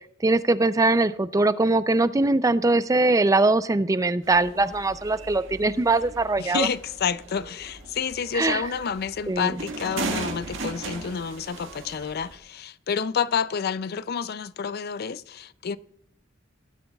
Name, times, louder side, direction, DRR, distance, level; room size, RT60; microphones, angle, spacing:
voice 1, 0.2-6.7 8.3-8.6 9.3-9.5, right 2 dB, 15° right, 0.4 m, -21 dB
sound 1, 4.2-12.4, right 3 dB, 70° right, 1.7 m, -37 dB
voice 2, 6.4-15.8, left 6 dB, 50° left, 0.4 m, -29 dB
17.5 x 11.5 x 2.3 m
head